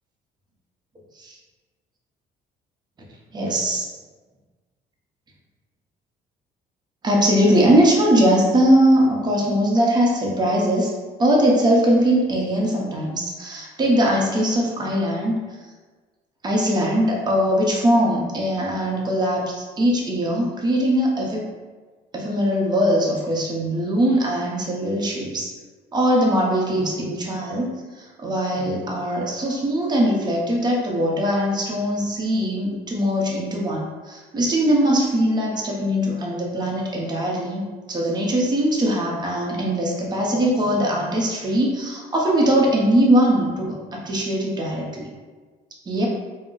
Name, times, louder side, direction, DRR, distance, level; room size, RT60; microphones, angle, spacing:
voice 1, 3.3-3.9 7.0-10.9 11.2-15.4 16.4-21.4 22.1-25.5 25.9-37.6 37.9-45.1 45.9-46.1, equal, 25° right, -2 dB, 0.7 m, -21 dB
2.4 x 2.1 x 3.7 m, 1.3 s
cardioid pair, 110°, 17 cm